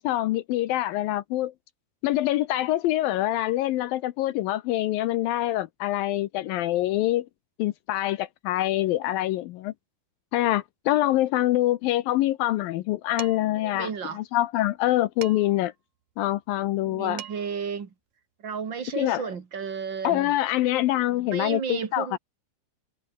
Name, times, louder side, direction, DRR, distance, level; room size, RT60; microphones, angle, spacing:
voice 1, 0.0-1.5 2.0-7.3 7.6-9.7 10.3-15.7 16.2-17.2 19.0-19.3 20.0-22.2, left 15 dB, 75° left, 2.3 m, -25 dB
Dishes pots and pans, 13.2-13.6 15.2-15.7 16.8-16.9 17.2-17.6, right 12 dB, 60° right, 2.2 m, -41 dB
voice 2, 13.6-14.2 16.8-17.9 18.4-20.3 21.3-22.2, right 6 dB, 40° right, 2.0 m, -33 dB
omnidirectional pair, 4.6 m